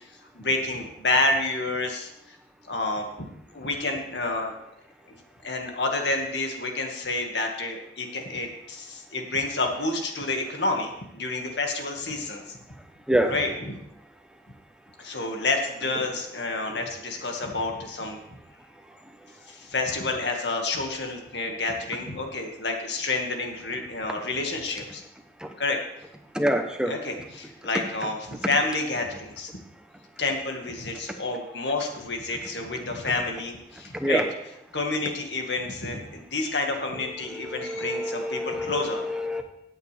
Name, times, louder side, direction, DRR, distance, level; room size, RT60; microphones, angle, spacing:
voice 1, 0.3-2.4 2.6-3.3 3.5-4.5 5.1-5.2 5.4-12.6 13.3-13.8 15.0-18.4 19.5-25.0 25.6-25.8 26.9-29.6 30.2-34.2 34.7-39.0, left 2 dB, 80° left, 3 dB, 1.8 m, -29 dB
voice 2, 26.3-26.9 33.9-34.2 37.5-39.4, equal, 5° right, 5 dB, 0.9 m, -26 dB
15.5 x 8.5 x 3.4 m, 0.81 s
head